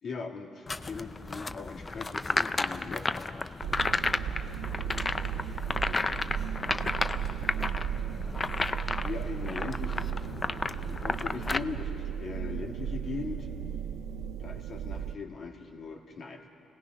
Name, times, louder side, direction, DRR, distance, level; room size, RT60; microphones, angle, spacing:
voice 1, 0.0-3.5 5.7-6.1 7.5-7.7 9.0-10.4 10.7-13.5 14.4-16.5, left 4 dB, 55° left, 2 dB, 2.4 m, -40 dB
sound 1, 0.7-11.6, left 3 dB, 25° left, 0.5 m, -32 dB
sound 2, 3.6-15.1, right 9 dB, 85° right, 0.6 m, -35 dB
30.0 x 18.0 x 5.4 m, 2.8 s
cardioid pair, 90°, 0 cm